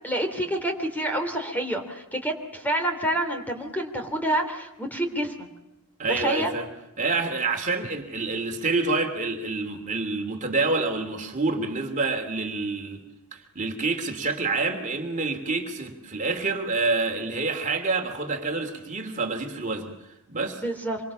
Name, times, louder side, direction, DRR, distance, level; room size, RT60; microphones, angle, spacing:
voice 1, 0.0-5.3 6.1-6.5 20.6-21.0, right 1 dB, 10° left, 4 dB, 3.2 m, -28 dB
voice 2, 6.0-6.7 7.0-13.0 13.3-19.9 20.3-20.6, right 3 dB, 35° right, 4 dB, 2.8 m, -27 dB
26.5 x 24.5 x 7.3 m, 0.98 s
head